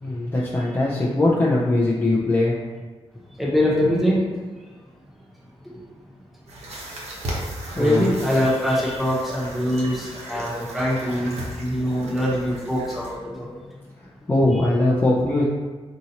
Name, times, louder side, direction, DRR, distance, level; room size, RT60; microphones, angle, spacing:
voice 1, 0.0-2.6 7.3-7.4 7.8-8.1 14.3-15.4, left 2 dB, 20° left, -6 dB, 0.6 m, -21 dB
voice 2, 3.4-4.2 7.7-13.6, equal, ahead, -6 dB, 1.2 m, -23 dB
sound 1, 6.5-13.1, right 1 dB, 80° right, 1.1 m, -36 dB
4.5 x 2.9 x 4.1 m, 1.3 s
wide cardioid pair, 145°, 11 cm